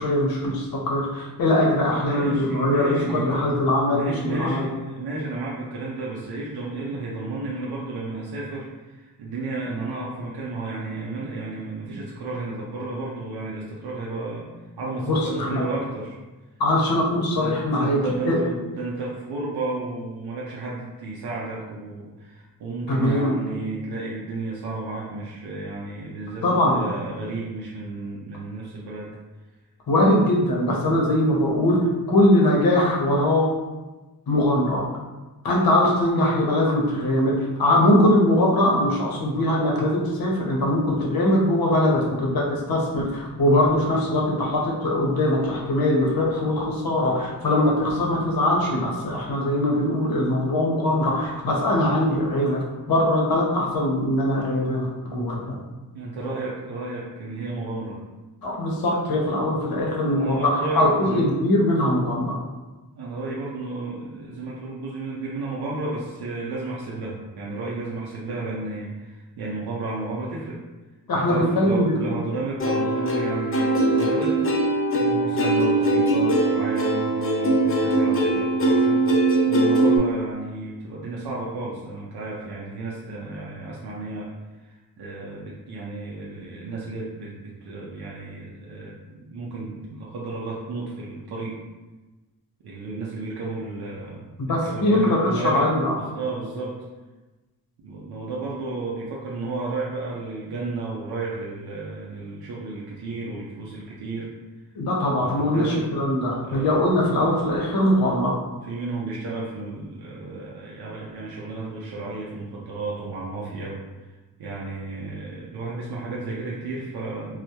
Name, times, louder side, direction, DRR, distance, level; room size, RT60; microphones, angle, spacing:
voice 1, 0.0-4.7 15.1-15.6 16.6-18.0 18.2-18.4 22.9-23.4 26.4-26.8 29.9-33.5 34.3-34.8 35.4-55.6 58.4-62.4 71.1-72.1 94.4-95.9 104.7-108.3, left 1 dB, 65° left, -3 dB, 0.8 m, -21 dB
voice 2, 1.8-3.4 3.8-14.5 14.8-16.1 17.3-29.1 55.9-58.0 59.4-61.2 62.9-70.6 71.1-74.4 74.9-79.0 79.5-84.3 84.6-91.6 92.6-95.7 96.0-96.8 97.8-104.3 105.2-105.8 106.4-106.8 108.6-113.8 114.4-117.4, right 3 dB, 85° right, -5 dB, 0.5 m, -32 dB
Plucked string instrument, 72.6-80.0, right 2 dB, 35° left, 0.5 m, -21 dB
2.2 x 2.1 x 2.7 m, 1.2 s
cardioid pair, 60°, 38 cm